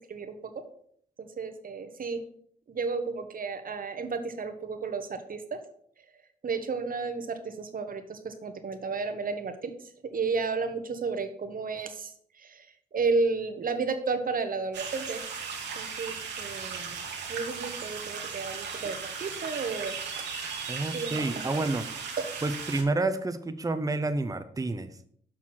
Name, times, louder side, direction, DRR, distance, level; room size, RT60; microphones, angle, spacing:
voice 1, 1.2-2.2 2.7-5.6 6.4-9.7 10.1-12.1 12.4-12.7 12.9-15.2 15.8-16.9 17.3-19.9 20.9-21.5 22.2-22.3, right 4 dB, 50° right, 8 dB, 1.1 m, -32 dB
sound 1, 14.7-22.8, right 5 dB, 75° right, 1.2 m, -37 dB
voice 2, 20.7-21.8 22.4-24.9, right 2 dB, 20° right, 9 dB, 0.7 m, -29 dB
6.4 x 5.7 x 4.3 m, 0.64 s
hypercardioid pair, 45°, 18 cm